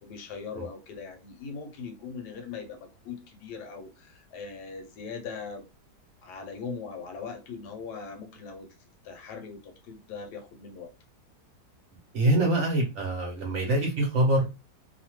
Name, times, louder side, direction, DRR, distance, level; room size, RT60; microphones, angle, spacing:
voice 1, 0.0-5.6 6.2-8.7 9.0-10.9, left 5 dB, 80° left, 1.2 m, -40 dB
voice 2, 12.1-14.4, right 1 dB, 60° right, 0.8 m, -24 dB
2.8 x 2.2 x 2.9 m
omnidirectional pair, 1.8 m